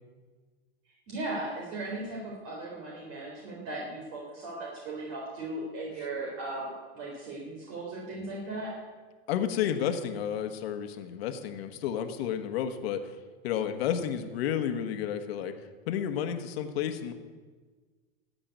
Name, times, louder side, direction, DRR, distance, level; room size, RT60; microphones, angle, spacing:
voice 1, 1.1-8.7, right 2 dB, 50° right, -2 dB, 4.1 m, -37 dB
voice 2, 9.3-13.2 13.4-17.1, left 9 dB, 70° left, 7 dB, 1.5 m, -31 dB
13.5 x 7.9 x 9.3 m, 1.4 s
hypercardioid pair, 115°, 31 cm